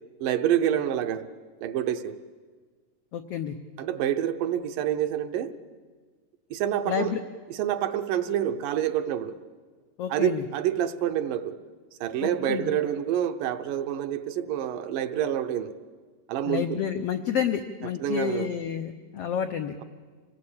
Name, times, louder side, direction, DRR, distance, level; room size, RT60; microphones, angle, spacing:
voice 1, 0.2-1.3 1.6-2.2 3.8-5.5 6.5-7.1 7.5-9.4 10.1-11.6 12.0-15.7 16.3-16.8 18.0-18.5, right 10 dB, 80° right, 9 dB, 2.5 m, -27 dB
voice 2, 3.1-3.6 6.9-7.2 10.0-10.4 12.2-12.7 16.5-19.8, left 8 dB, 85° left, 7 dB, 1.3 m, -29 dB
26.0 x 19.0 x 8.7 m, 1.5 s
omnidirectional pair, 3.9 m